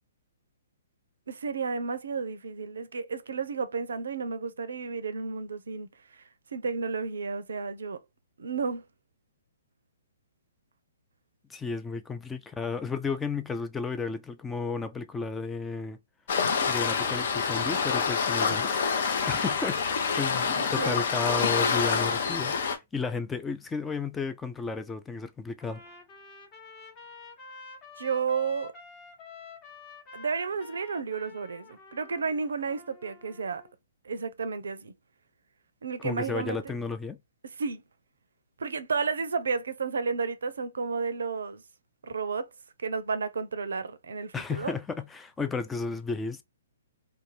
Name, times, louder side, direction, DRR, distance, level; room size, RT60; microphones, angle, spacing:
voice 1, 1.3-5.9 6.5-8.0 8.4-8.8 20.6-21.0 28.0-28.7 30.1-33.6 34.0-34.9 35.8-36.7 37.6-37.8 38.6-41.6 42.0-42.5 42.8-44.7, right 5 dB, 70° right, 0.5 m, -32 dB
voice 2, 11.5-16.0 16.7-18.8 19.3-25.8 36.0-37.2 44.3-46.4, left 4 dB, 10° left, 0.3 m, -33 dB
Waves surf, 16.3-22.8, left 5 dB, 55° left, 0.6 m, -27 dB
Trumpet, 25.6-33.7, left 5 dB, 30° left, 0.9 m, -49 dB
2.5 x 2.2 x 3.1 m
figure-of-eight pair, 125°, 0 cm